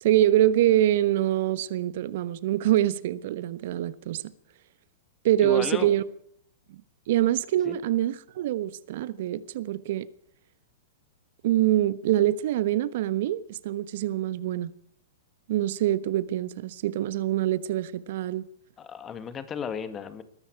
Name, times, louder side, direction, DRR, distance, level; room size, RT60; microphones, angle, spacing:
voice 1, 0.0-4.2 5.2-6.0 6.7-6.8 7.1-10.1 11.4-14.7 15.5-18.5, right 13 dB, 60° right, 1.1 m, -25 dB
voice 2, 5.4-6.0 7.7-7.8 18.8-20.2, left 7 dB, 25° left, 1.9 m, -34 dB
21.0 x 13.5 x 4.7 m
hypercardioid pair, 110°, 0 cm